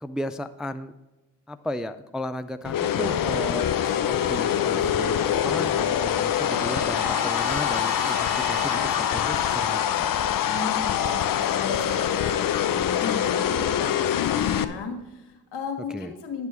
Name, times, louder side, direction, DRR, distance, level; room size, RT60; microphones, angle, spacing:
voice 1, 0.0-0.9 1.5-10.1 15.9-16.1, left 1 dB, ahead, 11 dB, 0.4 m, -34 dB
sound 1, 2.6-14.6, left 9 dB, 50° left, 0.7 m, -24 dB
sound 2, 3.5-8.3, left 5 dB, 30° left, 1.4 m, -43 dB
Trumpet, 5.1-9.9, right 2 dB, 35° right, 1.6 m, -39 dB
voice 2, 10.5-16.5, left 5 dB, 70° left, 4 dB, 1.7 m, -35 dB
10.5 x 6.1 x 4.3 m, 1.0 s
hypercardioid pair, 45°, 42 cm